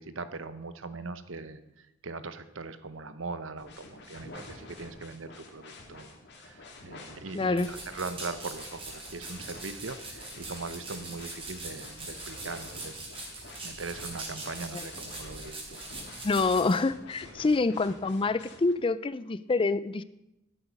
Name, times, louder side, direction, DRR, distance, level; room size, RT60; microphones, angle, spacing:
voice 1, 0.0-13.0 13.4-15.8, right 3 dB, 65° right, 12 dB, 0.9 m, -40 dB
sound 1, 3.6-18.7, left 2 dB, 55° left, 2.2 m, -49 dB
voice 2, 7.3-7.7 16.2-20.0, left 3 dB, 25° left, 16 dB, 0.4 m, -26 dB
sound 2, 7.6-16.8, right 2 dB, 25° right, 3.8 m, -42 dB
13.0 x 11.0 x 5.2 m, 0.88 s
head